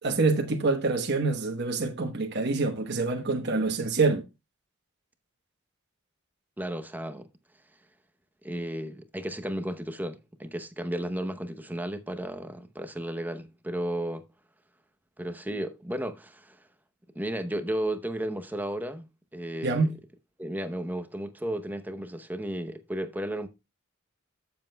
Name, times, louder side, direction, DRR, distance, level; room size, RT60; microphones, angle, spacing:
voice 1, 0.0-4.2 19.6-19.9, right 3 dB, 50° right, 1.0 m, -26 dB
voice 2, 6.6-7.3 8.4-14.3 15.2-16.6 17.1-19.8 20.4-23.5, right 1 dB, 10° right, 0.8 m, -34 dB
13.5 x 7.2 x 2.2 m
head